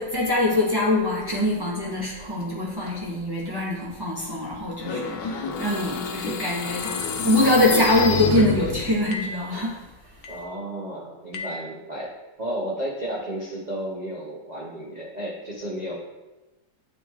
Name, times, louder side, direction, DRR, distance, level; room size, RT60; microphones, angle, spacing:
voice 1, 0.0-6.9 7.2-9.7, left 1 dB, 15° right, -6 dB, 0.8 m, -23 dB
sound 1, 4.8-9.0, left 5 dB, 85° left, 1.4 m, -29 dB
sound 2, 6.8-7.1 8.0-8.3 9.1-9.5 10.2-10.5 11.3-11.7, left 2 dB, 65° left, 1.1 m, -36 dB
voice 2, 10.3-12.1 12.4-15.9, right 1 dB, 60° right, -5 dB, 0.4 m, -32 dB
8.9 x 3.1 x 3.5 m, 1.1 s
omnidirectional pair, 2.1 m